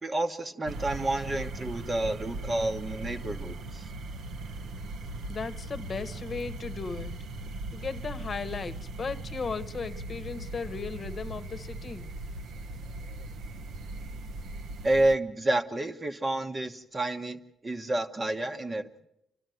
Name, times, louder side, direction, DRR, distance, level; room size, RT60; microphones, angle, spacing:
voice 1, 0.0-3.9 14.8-19.1, right 2 dB, 25° right, 1.2 m, -29 dB
sound 1, 0.7-15.2, right 2 dB, 70° right, 1.1 m, -39 dB
voice 2, 5.3-7.1 7.7-12.1, left 5 dB, 40° left, 1.2 m, -36 dB
29.0 x 12.0 x 9.3 m
cardioid pair, 90°, 0 cm